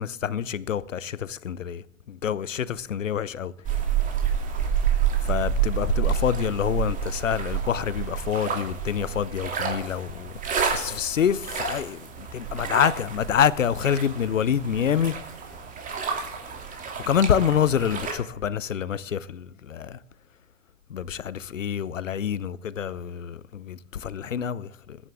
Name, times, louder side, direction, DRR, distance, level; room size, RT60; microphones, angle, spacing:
voice 1, 0.0-3.5 5.3-10.3 10.7-15.2 17.1-20.0 20.9-25.0, left 8 dB, 75° left, 0.7 m, -26 dB
sound 1, 3.6-18.1, right 7 dB, 20° right, 2.6 m, -29 dB
20.0 x 9.9 x 3.5 m
figure-of-eight pair, 105°, 38 cm